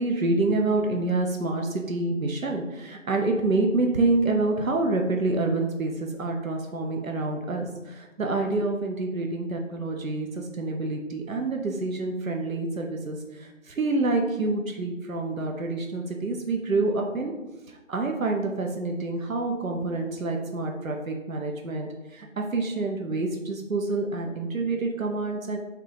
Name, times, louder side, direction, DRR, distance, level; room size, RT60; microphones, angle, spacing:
voice 1, 0.0-17.3 17.7-25.6, right 2 dB, 90° right, 2 dB, 0.8 m, -27 dB
4.7 x 3.7 x 2.8 m, 1.1 s
figure-of-eight pair, 170°, 39 cm